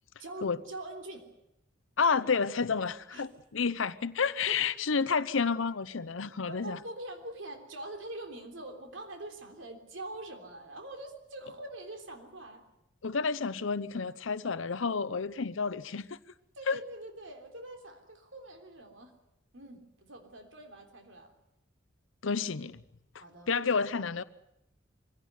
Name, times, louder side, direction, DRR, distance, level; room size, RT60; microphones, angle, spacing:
voice 1, 0.2-1.3 3.1-3.3 4.5-4.6 6.5-12.7 16.5-19.1 19.5-21.3 23.2-23.5, right 1 dB, 70° right, 3.4 m, -44 dB
voice 2, 2.0-6.8 13.0-16.2 16.7-16.8 22.2-22.8 23.1-24.2, left 5 dB, 80° left, 0.8 m, -30 dB
23.5 x 17.0 x 9.5 m
head